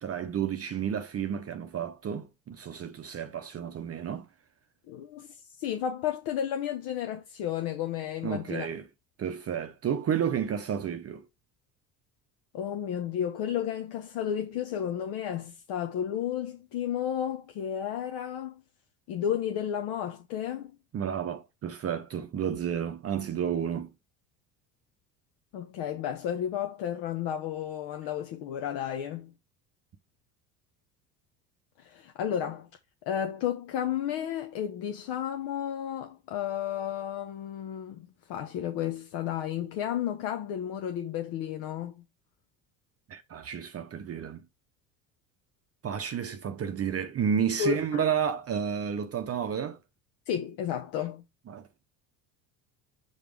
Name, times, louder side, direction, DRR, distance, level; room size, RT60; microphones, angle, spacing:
voice 1, 0.0-4.3 8.2-8.9 9.2-11.2 20.9-23.9 43.1-44.4 45.8-49.8 51.5-51.7, right 8 dB, 30° right, 0.7 m, -31 dB
voice 2, 4.9-8.7 12.5-18.6 19.1-20.7 25.5-29.3 31.8-32.7 33.1-42.0 47.6-48.0 50.3-51.2, left 9 dB, 60° left, 1.0 m, -32 dB
5.1 x 4.3 x 4.7 m
hypercardioid pair, 70°, 47 cm